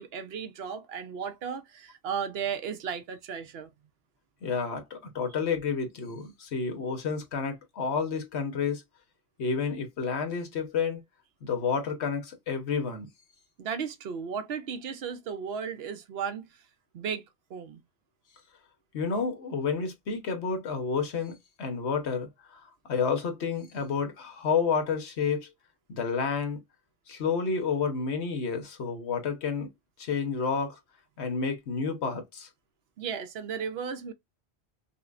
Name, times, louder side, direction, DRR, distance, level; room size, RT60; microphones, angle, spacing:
voice 1, 0.0-3.7 13.6-16.5 16.9-17.2 17.5-17.8 33.0-34.1, right 7 dB, 70° right, 0.9 m, -35 dB
voice 2, 4.4-8.8 9.4-11.0 11.4-13.1 18.9-22.3 22.9-25.5 25.9-26.6 27.1-29.7 30.0-30.8 31.2-32.5, left 5 dB, 80° left, 1.2 m, -30 dB
5.5 x 2.1 x 2.4 m
omnidirectional pair, 1.1 m